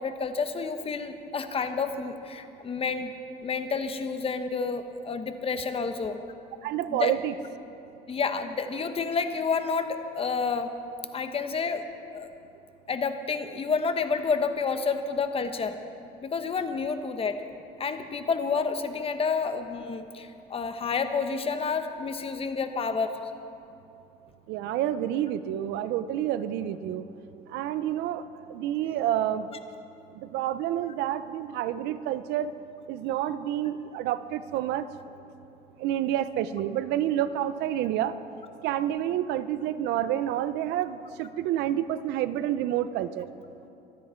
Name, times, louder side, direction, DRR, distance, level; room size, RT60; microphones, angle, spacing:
voice 1, 0.0-3.1 3.4-6.2 6.9-7.1 8.1-10.7 11.1-11.8 12.1-12.3 12.9-15.8 16.2-17.4 17.8-23.1, left 5 dB, 35° left, 8 dB, 1.0 m, -29 dB
voice 2, 6.6-7.3 24.5-27.0 27.5-29.5 30.1-32.5 32.9-34.9 35.8-38.2 38.6-43.3, right 11 dB, 90° right, 13 dB, 0.6 m, -29 dB
25.0 x 9.6 x 4.5 m, 2.7 s
cardioid pair, 110°, 17 cm